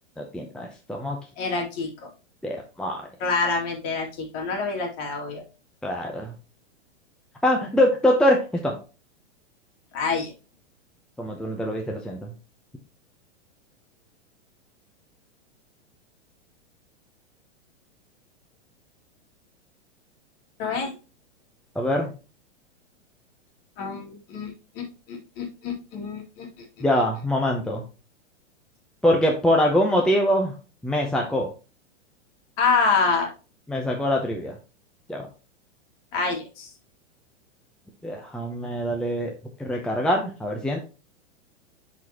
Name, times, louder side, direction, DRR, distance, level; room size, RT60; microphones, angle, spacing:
voice 1, 0.2-1.2 2.4-3.0 5.8-6.3 7.4-8.8 11.2-12.3 21.8-22.1 26.8-27.8 29.0-30.5 30.8-31.5 33.7-34.5 35.1-35.3 38.0-39.3 39.6-40.8, left 1 dB, ahead, 1 dB, 0.7 m, -23 dB
voice 2, 1.4-2.1 3.2-5.4 9.9-10.3 20.6-20.9 23.8-24.5 24.8-26.5 32.6-33.3 36.1-36.7, left 4 dB, 40° left, 1 dB, 2.5 m, -26 dB
10.0 x 4.2 x 2.9 m, 0.32 s
hypercardioid pair, 130°, 36 cm